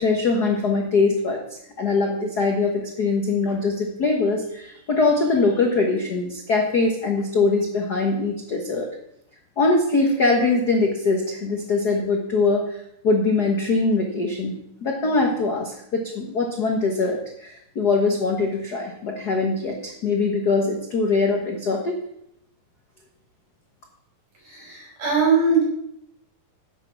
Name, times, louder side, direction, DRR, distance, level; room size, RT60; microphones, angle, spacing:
voice 1, 0.0-1.4 1.8-8.9 9.6-12.8 13.0-14.5 14.8-22.0, left 3 dB, 75° left, 1 dB, 0.9 m, -22 dB
voice 2, 24.4-25.6, right 4 dB, 65° right, -2 dB, 6.9 m, -21 dB
11.0 x 8.6 x 6.0 m, 0.76 s
omnidirectional pair, 4.0 m